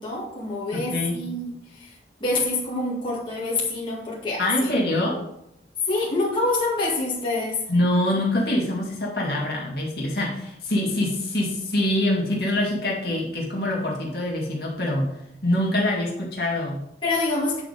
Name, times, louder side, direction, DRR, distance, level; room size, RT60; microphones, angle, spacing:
voice 1, 0.0-4.7 5.8-7.7 17.0-17.6, left 2 dB, 25° left, -5 dB, 2.1 m, -26 dB
voice 2, 0.7-1.2 4.4-5.2 7.7-15.1 15.4-16.8, left 1 dB, 60° left, -3 dB, 2.2 m, -24 dB
9.6 x 4.2 x 5.1 m, 0.79 s
head